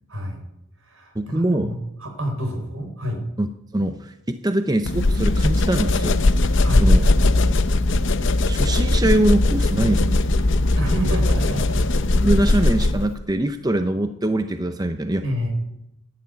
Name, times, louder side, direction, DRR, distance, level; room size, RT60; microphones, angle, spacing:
voice 1, 0.1-0.4 0.8-3.2 6.6-6.9 10.5-11.9 15.2-15.5, equal, 70° right, 4 dB, 4.7 m, -29 dB
voice 2, 1.1-1.7 3.4-6.2 6.8-7.0 8.5-10.2 12.2-15.3, right 1 dB, 15° right, 8 dB, 0.6 m, -23 dB
sound 1, 4.9-13.1, left 2 dB, 55° left, 0.8 m, -19 dB
12.0 x 11.0 x 9.3 m, 0.86 s
head